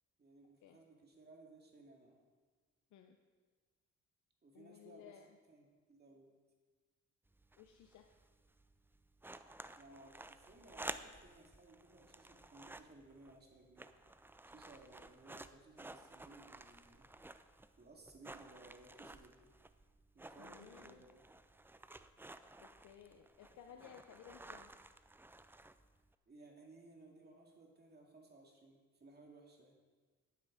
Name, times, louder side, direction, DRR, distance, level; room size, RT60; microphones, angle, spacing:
voice 1, 0.2-2.2 4.4-5.2 5.5-6.3 9.8-13.9 14.5-17.1 17.8-19.5 20.1-21.2 26.3-29.8, right 2 dB, 35° right, 1 dB, 2.2 m, -60 dB
voice 2, 4.5-5.4 7.6-8.1 20.4-21.0 22.6-24.7, left 9 dB, 75° left, 4 dB, 0.8 m, -58 dB
sound 1, 7.3-26.1, right 2 dB, 5° right, 0.4 m, -54 dB
10.5 x 9.3 x 5.0 m, 1.4 s
cardioid pair, 90°, 30 cm